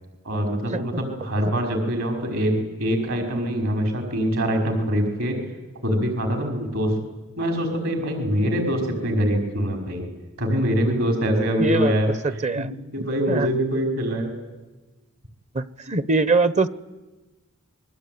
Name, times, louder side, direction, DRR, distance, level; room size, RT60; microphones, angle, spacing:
voice 1, 0.2-5.4 5.8-7.0 7.4-10.1 10.4-12.1 12.5-12.6 12.9-14.3, equal, 65° right, 4 dB, 5.5 m, -24 dB
voice 2, 11.6-11.9 12.2-12.7 13.0-13.5 15.5-16.7, right 3 dB, 30° right, 16 dB, 1.0 m, -23 dB
27.5 x 22.0 x 9.5 m, 1.1 s
head